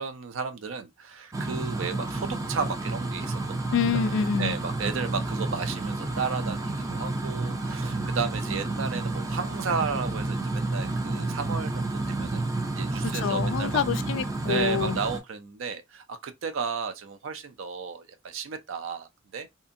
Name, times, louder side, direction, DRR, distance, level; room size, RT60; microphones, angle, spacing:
voice 1, 0.0-4.1 4.4-12.4 12.7-13.8 14.5-19.5, right 5 dB, 75° right, 0.4 m, -33 dB
sound 1, 1.3-15.2, right 2 dB, 15° right, 0.4 m, -30 dB
voice 2, 3.7-4.5 13.0-15.0, left 7 dB, 70° left, 0.3 m, -27 dB
2.7 x 2.5 x 2.6 m
head